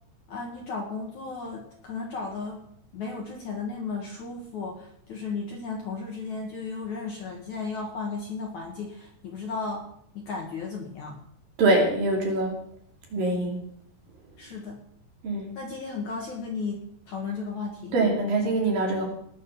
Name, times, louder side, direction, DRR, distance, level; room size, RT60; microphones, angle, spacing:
voice 1, 0.3-2.6 2.9-9.9 10.1-11.1 14.4-14.8 15.6-16.8 17.1-17.9, left 4 dB, 55° left, 1 dB, 2.3 m, -34 dB
voice 2, 11.6-12.5 13.1-13.6 15.2-15.5 17.9-19.1, right 2 dB, 55° right, 0 dB, 4.2 m, -23 dB
19.0 x 6.5 x 6.8 m, 0.70 s
omnidirectional pair, 5.1 m